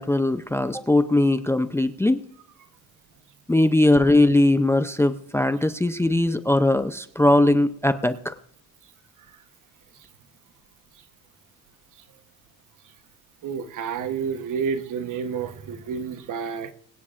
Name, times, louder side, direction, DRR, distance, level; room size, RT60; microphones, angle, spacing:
voice 1, 0.0-2.3 3.5-8.3, left 1 dB, 5° left, 0.5 m, -20 dB
voice 2, 13.4-16.7, right 6 dB, 55° right, 1.2 m, -30 dB
23.5 x 9.7 x 2.5 m
cardioid pair, 105°, 36 cm